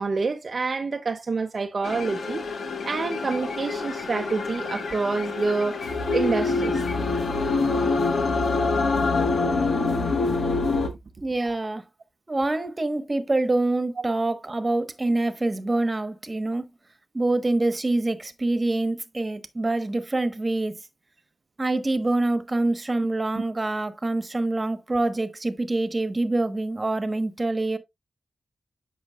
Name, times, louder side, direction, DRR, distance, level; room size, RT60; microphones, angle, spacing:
voice 1, 0.0-2.5 2.8-5.8 6.1-6.8 14.0-14.1 23.3-23.4, right 4 dB, 55° right, 0.6 m, -27 dB
sound 1, 1.8-10.9, left 3 dB, 80° left, 1.4 m, -25 dB
voice 2, 11.2-11.8 12.3-16.7 17.1-20.8 21.6-27.8, right 2 dB, 30° right, 1.2 m, -25 dB
8.2 x 5.9 x 2.4 m
cardioid pair, 70°, 0 cm